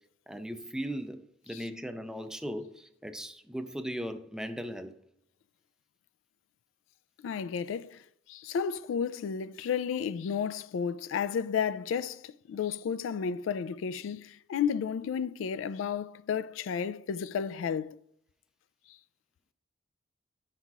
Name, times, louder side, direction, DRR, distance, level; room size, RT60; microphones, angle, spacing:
voice 1, 0.3-4.9, equal, 5° right, 0.4 m, -38 dB
voice 2, 7.2-8.0 8.3-18.0, left 7 dB, 90° left, 0.3 m, -32 dB
10.5 x 5.7 x 2.3 m
head